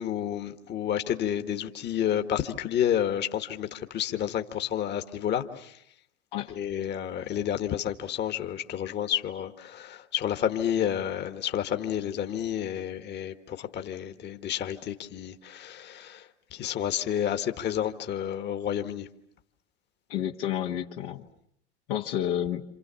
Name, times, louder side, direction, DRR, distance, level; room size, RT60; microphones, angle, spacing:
voice 1, 0.0-5.7 6.5-16.2 16.5-19.1, left 10 dB, 30° left, 7 dB, 1.8 m, -30 dB
voice 2, 20.1-21.2 21.9-22.6, left 11 dB, 55° left, 2 dB, 1.7 m, -30 dB
28.5 x 27.5 x 7.0 m, 0.72 s
hypercardioid pair, 95°, 34 cm